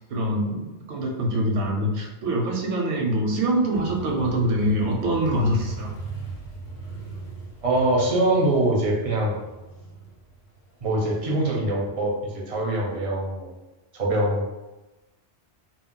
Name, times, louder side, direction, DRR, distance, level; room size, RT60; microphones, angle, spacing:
voice 1, 0.1-5.9, right 1 dB, 75° right, 0 dB, 0.9 m, -24 dB
Motorcycle, 3.7-11.4, right 4 dB, 55° left, 0.7 m, -38 dB
voice 2, 7.6-9.4 10.8-13.5 13.9-14.4, right 1 dB, 45° right, -2 dB, 0.5 m, -23 dB
2.3 x 2.0 x 3.6 m, 1.1 s
omnidirectional pair, 1.2 m